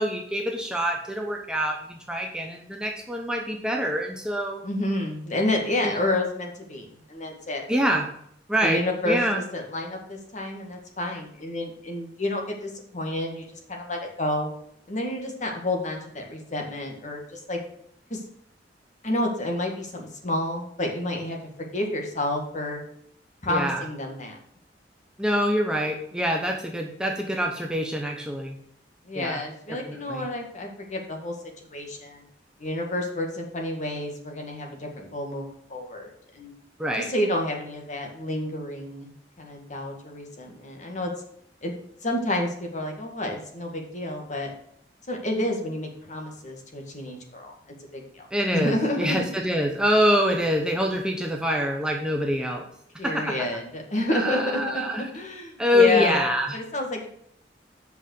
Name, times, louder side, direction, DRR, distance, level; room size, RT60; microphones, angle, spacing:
voice 1, 0.0-4.6 5.8-6.0 7.7-8.1 8.5-9.4 23.5-23.8 25.2-28.6 29.1-29.4 29.9-30.2 36.8-37.1 48.3-52.6 53.0-53.4 54.1-55.1 55.6-56.6, equal, 5° right, 1 dB, 1.0 m, -25 dB
voice 2, 4.6-7.6 8.6-14.5 14.9-17.6 18.1-18.2 19.0-22.8 23.4-24.4 29.1-31.3 31.7-32.2 32.6-36.5 37.0-39.1 39.4-41.1 41.6-44.5 45.1-47.5 47.9-48.3 48.5-49.2 53.0-56.2 56.5-57.1, left 1 dB, 45° left, 2 dB, 2.0 m, -30 dB
8.1 x 5.7 x 6.5 m, 0.69 s
head